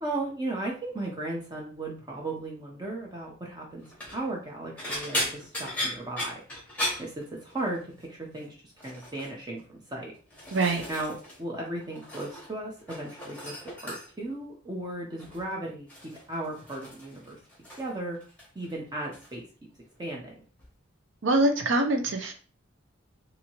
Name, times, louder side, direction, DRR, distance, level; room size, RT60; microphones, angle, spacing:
voice 1, 0.0-3.9 4.1-6.4 7.0-8.6 8.8-10.1 10.9-11.1 11.4-13.6 13.8-15.9 16.3-17.4 17.8-18.2 18.5-19.4 20.0-20.4, right 2 dB, 20° right, -2 dB, 0.6 m, -35 dB
sound 1, 3.8-4.2 4.8-7.8 8.1-8.4 8.8-9.3 10.0-11.4 11.7-12.5 12.8-14.3 15.2-15.5 15.9-17.9 18.2-18.7 19.1-19.3 20.6-20.7, left 1 dB, 5° left, 0.9 m, -36 dB
voice 2, 10.5-10.8 21.2-22.3, right 2 dB, 65° right, 4 dB, 0.6 m, -24 dB
2.8 x 2.7 x 2.9 m, 0.39 s
head